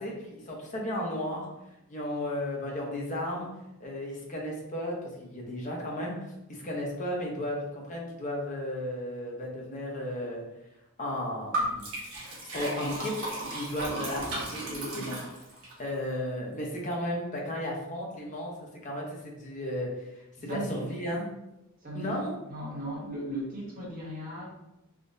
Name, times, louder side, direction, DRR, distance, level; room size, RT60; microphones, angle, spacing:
voice 1, 0.0-1.5 1.9-3.5 3.8-6.1 6.5-10.4 11.0-11.9 12.5-13.2 13.5-15.2 15.8-18.5 18.8-20.1 20.4-21.3 21.9-22.3, left 1 dB, 35° left, -2 dB, 0.6 m, -34 dB
Liquid, 11.5-15.7, right 1 dB, 65° right, 1.1 m, -34 dB
voice 2, 20.5-21.2 21.8-22.2 22.5-24.4, right 1 dB, 40° right, -5 dB, 1.0 m, -37 dB
3.5 x 2.5 x 2.6 m, 0.93 s
head